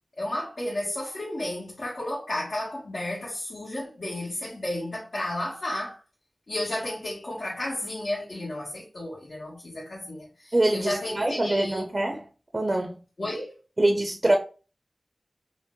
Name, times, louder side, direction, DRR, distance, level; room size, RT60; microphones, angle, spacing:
voice 1, 0.2-6.0 6.5-11.8 13.2-13.5, left 1 dB, 65° left, 1.4 m, -32 dB
voice 2, 10.5-12.3 12.5-13.0 13.8-14.4, right 1 dB, 40° right, 0.6 m, -24 dB
5.0 x 2.1 x 3.7 m
wide cardioid pair, 55°, 0 cm